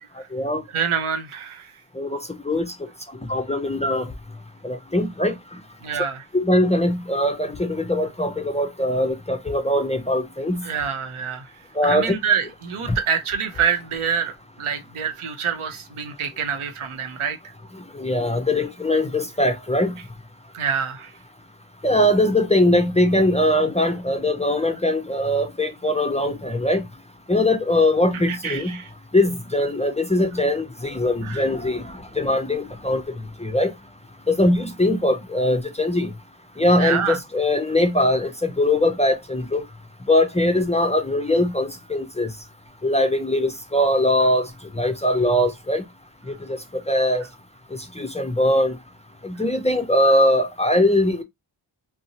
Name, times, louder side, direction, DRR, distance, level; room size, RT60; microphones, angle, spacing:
voice 1, 0.7-1.7 5.8-6.3 10.6-11.5 11.8-17.5 20.5-21.1 28.3-28.9 31.2-31.4 36.8-37.2, right 7 dB, 85° right, 0.7 m, -26 dB
voice 2, 3.3-4.0 4.6-5.4 6.3-10.7 11.8-12.1 18.0-19.9 21.8-26.8 27.3-28.7 29.1-33.0 33.4-33.7 34.3-36.1 36.6-39.6 40.1-42.3 42.8-44.5 44.8-45.8 46.9-47.2 48.0-48.7 49.2-51.2, left 1 dB, 15° left, 0.3 m, -21 dB
2.6 x 2.0 x 2.7 m
wide cardioid pair, 60°, 49 cm